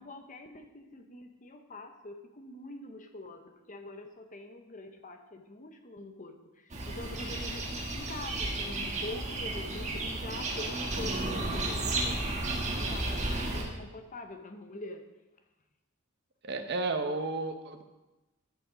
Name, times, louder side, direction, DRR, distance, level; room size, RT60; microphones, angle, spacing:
voice 1, 0.0-15.0, left 2 dB, 35° left, 6 dB, 1.0 m, -44 dB
sound 1, 6.7-13.6, right 2 dB, 30° right, 1.6 m, -33 dB
voice 2, 16.4-17.8, right 3 dB, 50° right, 7 dB, 0.9 m, -32 dB
13.0 x 6.9 x 5.1 m, 1.1 s
head